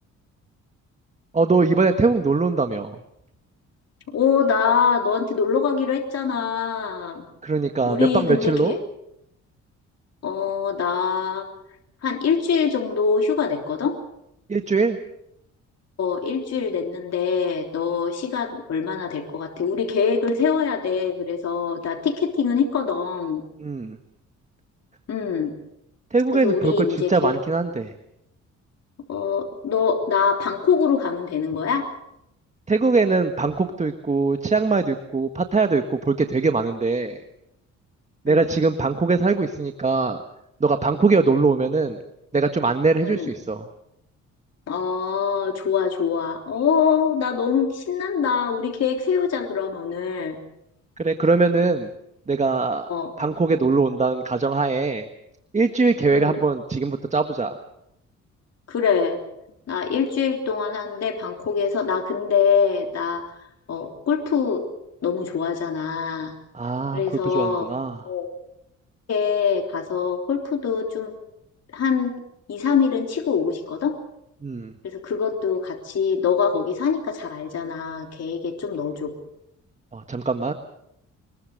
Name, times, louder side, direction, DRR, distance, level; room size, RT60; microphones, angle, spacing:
voice 1, 1.3-2.9 7.4-8.8 14.5-15.0 23.6-24.0 26.1-27.9 32.7-37.2 38.2-40.2 40.6-42.0 42.3-43.7 51.0-51.9 52.3-52.8 53.2-55.1 55.5-57.6 66.5-68.0 74.4-74.7 79.9-80.5, right 3 dB, 25° right, 7 dB, 1.6 m, -21 dB
voice 2, 4.1-7.2 7.8-8.8 10.2-11.5 12.0-13.9 16.0-23.4 25.1-25.5 26.3-27.4 29.1-31.9 38.3-38.5 43.0-43.3 44.7-50.4 52.9-53.1 56.1-56.4 58.7-59.2 59.7-63.2 63.7-64.6 65.0-66.3 66.9-67.7 68.0-68.3 69.1-71.2 71.7-72.1 72.5-73.9 74.9-79.1, left 6 dB, 55° left, 2 dB, 3.4 m, -24 dB
24.0 x 21.5 x 6.6 m, 0.79 s
cardioid pair, 90°, 30 cm